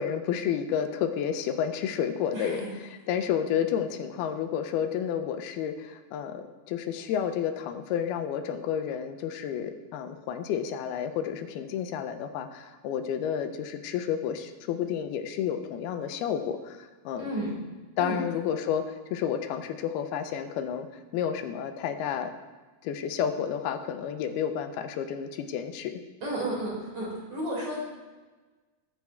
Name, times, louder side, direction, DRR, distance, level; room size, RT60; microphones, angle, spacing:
voice 1, 0.0-2.6 3.1-17.2 18.0-20.9 21.1-22.3 22.8-26.0, left 8 dB, 90° left, 7 dB, 2.8 m, -31 dB
voice 2, 2.3-2.7 17.2-17.5 18.0-18.2 26.2-27.8, right 1 dB, 35° right, -5 dB, 5.1 m, -32 dB
20.5 x 8.4 x 3.5 m, 1.3 s
omnidirectional pair, 4.4 m